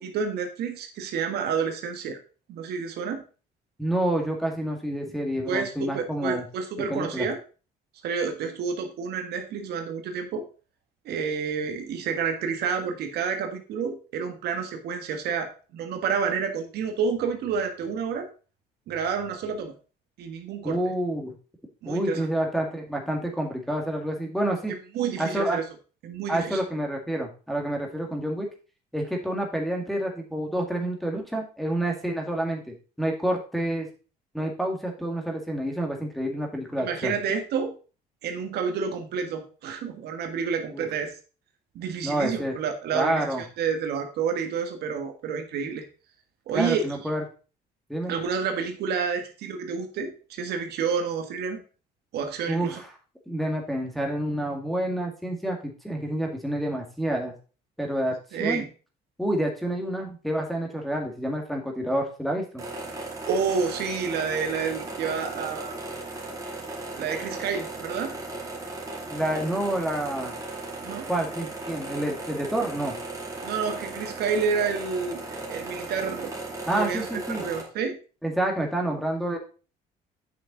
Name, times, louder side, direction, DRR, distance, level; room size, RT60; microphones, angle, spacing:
voice 1, 0.0-2.2 2.5-3.2 5.5-7.4 8.0-10.4 11.0-18.3 18.9-19.7 20.2-20.8 21.8-22.3 24.7-25.6 26.0-26.6 36.8-37.7 38.2-41.2 41.7-45.8 46.5-46.8 48.1-51.6 52.1-52.8 58.3-58.7 63.3-65.8 67.0-68.1 70.8-71.1 73.4-76.3 76.7-77.0 77.4-78.0, right 6 dB, 75° right, 6 dB, 1.5 m, -29 dB
voice 2, 3.8-6.4 6.9-7.3 20.6-21.3 21.9-24.7 25.2-25.6 26.3-28.5 28.9-33.9 34.3-37.1 40.7-40.9 42.0-42.5 42.9-43.4 46.5-47.2 47.9-48.1 52.5-52.9 53.3-57.3 57.8-58.6 59.2-62.6 69.1-70.3 71.1-73.0 76.7-77.4 78.2-79.4, right 1 dB, ahead, -1 dB, 1.9 m, -28 dB
sound 1, 62.6-77.6, right 2 dB, 20° right, 2.6 m, -36 dB
8.4 x 5.9 x 3.9 m, 0.36 s
cardioid pair, 110°, 17 cm